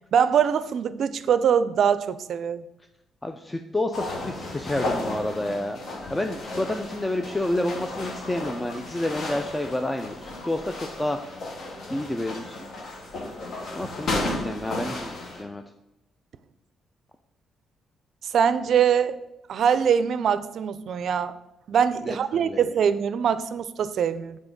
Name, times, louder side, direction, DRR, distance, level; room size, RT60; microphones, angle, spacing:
voice 1, 0.1-2.6 18.3-19.2 19.5-21.4 21.7-24.4, right 7 dB, 65° right, 14 dB, 0.4 m, -23 dB
voice 2, 3.2-5.8 6.1-11.4 11.9-12.7 13.7-15.6 22.0-22.6, left 1 dB, 15° left, 6 dB, 0.4 m, -29 dB
sound 1, 3.9-15.4, left 2 dB, 60° left, 1.2 m, -34 dB
6.0 x 3.8 x 5.2 m, 0.90 s
cardioid pair, 90°, 0 cm